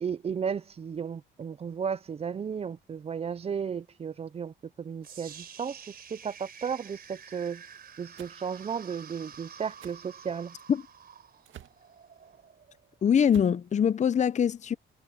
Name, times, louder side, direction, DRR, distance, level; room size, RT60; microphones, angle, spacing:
voice 1, 0.0-7.6 8.0-10.6, right 7 dB, 30° right, 0.5 m, -34 dB
sound 1, 5.0-13.1, right 7 dB, 50° right, 3.9 m, -49 dB
sound 2, 8.2-8.4 9.8-10.0 11.4-11.8 13.2-13.6, right 11 dB, 75° right, 2.0 m, -47 dB
voice 2, 13.0-14.7, left 8 dB, 35° left, 0.6 m, -23 dB
cardioid pair, 90°, 20 cm